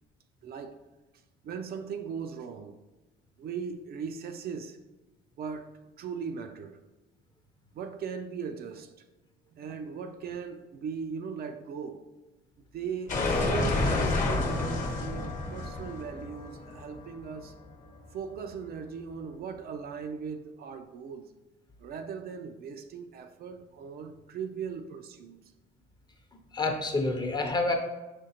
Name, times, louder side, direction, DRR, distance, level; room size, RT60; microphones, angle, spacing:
voice 1, 0.4-0.8 1.4-2.8 3.4-4.8 5.4-6.8 7.7-9.1 9.5-12.1 12.7-17.6 18.1-21.3 21.8-25.4, right 6 dB, 55° right, 7 dB, 0.4 m, -39 dB
sound 1, 13.1-17.9, left 2 dB, 45° left, 1.0 m, -29 dB
voice 2, 26.3-27.7, left 2 dB, 20° left, 4 dB, 0.6 m, -28 dB
5.0 x 3.3 x 2.8 m, 1.1 s
cardioid pair, 105°, 19 cm